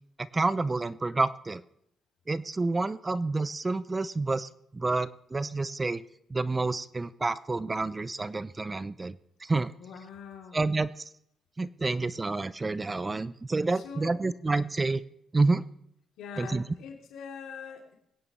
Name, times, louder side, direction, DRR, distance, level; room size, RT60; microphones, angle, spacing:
voice 1, 0.2-1.6 2.3-6.0 6.3-9.7 10.5-10.9 11.6-15.0 15.3-15.6 16.4-16.6, right 3 dB, 25° right, 16 dB, 0.5 m, -29 dB
voice 2, 9.8-10.6 13.7-14.2 16.2-17.9, left 6 dB, 85° left, 1 dB, 2.8 m, -43 dB
21.5 x 9.7 x 3.1 m, 0.72 s
cardioid pair, 90°, 0 cm